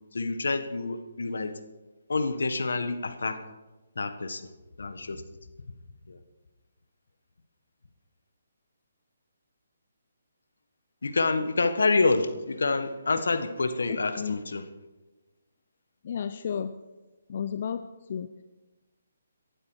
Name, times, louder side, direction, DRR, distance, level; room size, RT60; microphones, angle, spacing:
voice 1, 0.1-1.5 2.1-3.4 3.9-4.5 4.8-5.2 6.1-6.2 11.0-14.6, left 3 dB, 75° left, 10 dB, 1.5 m, -27 dB
voice 2, 16.0-16.7 17.3-18.3, left 7 dB, 50° left, 11 dB, 0.7 m, -32 dB
18.5 x 12.0 x 4.8 m, 1.2 s
hypercardioid pair, 150°, 0 cm